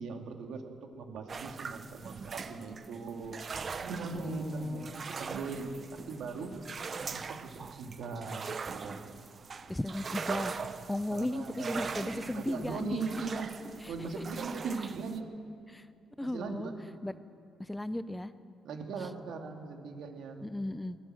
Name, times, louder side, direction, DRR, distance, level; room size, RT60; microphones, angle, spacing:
voice 1, 0.0-3.4 3.8-5.8 6.1-6.5 7.1-9.0 11.1-13.5 13.9-15.4 16.2-16.8 18.6-20.4, right 4 dB, 70° right, 4 dB, 2.4 m, -40 dB
sound 1, 1.3-15.2, right 5 dB, 35° right, 0.7 m, -41 dB
voice 2, 4.2-4.9 9.7-10.6 10.9-13.0 13.8-14.2 15.7-15.9 16.2-16.7 17.0-17.1 17.6-18.3 19.0-19.1 20.4-21.0, left 1 dB, 5° left, 13 dB, 0.6 m, -36 dB
24.0 x 17.0 x 7.8 m, 2.4 s
cardioid pair, 145°, 0 cm